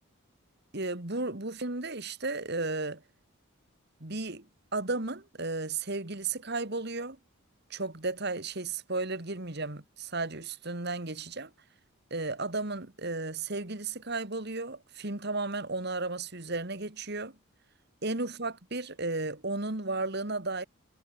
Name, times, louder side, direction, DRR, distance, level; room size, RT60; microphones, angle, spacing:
voice 1, 0.7-3.0 4.0-4.5 4.7-7.2 7.7-11.5 12.1-17.3 18.0-20.6, right 3 dB, 50° right, 2.1 m, -34 dB
head